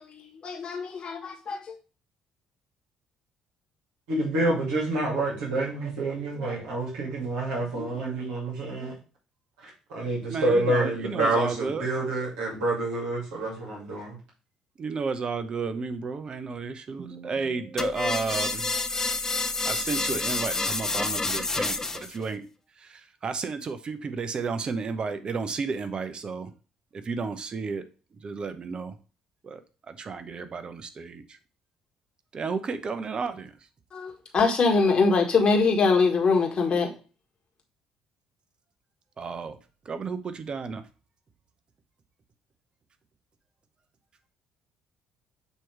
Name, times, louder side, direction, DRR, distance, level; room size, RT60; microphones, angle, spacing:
voice 1, 0.4-1.7 33.9-36.9, left 4 dB, 45° left, 1.5 m, -23 dB
voice 2, 4.1-8.9 9.6-14.2, right 2 dB, 75° right, 2.3 m, -28 dB
voice 3, 10.3-11.9 14.8-18.7 19.6-22.5 22.8-26.5 26.9-27.8 28.2-29.0 29.4-29.6 29.9-31.4 32.3-33.5 39.2-39.6 39.8-40.8, right 5 dB, 45° right, 0.9 m, -32 dB
sound 1, 17.8-22.2, left 3 dB, 25° left, 0.8 m, -28 dB
6.8 x 3.1 x 4.7 m
hypercardioid pair, 55°, 2 cm